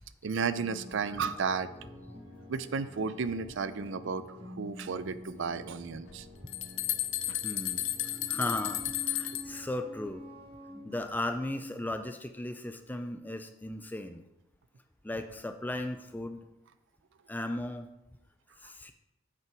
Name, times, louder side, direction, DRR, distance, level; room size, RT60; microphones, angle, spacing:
voice 1, 0.2-1.7 2.5-6.3 7.3-7.4, right 5 dB, 70° right, 13 dB, 0.5 m, -33 dB
sound 1, 0.6-11.0, left 1 dB, 30° right, 1.6 m, -48 dB
sound 2, 6.1-9.6, left 13 dB, 70° left, 0.6 m, -33 dB
voice 2, 7.4-7.9 8.3-10.2 10.8-14.2 15.0-16.5 17.3-17.9 18.6-18.9, left 1 dB, 10° left, 7 dB, 0.4 m, -36 dB
7.6 x 6.0 x 4.7 m, 0.91 s
head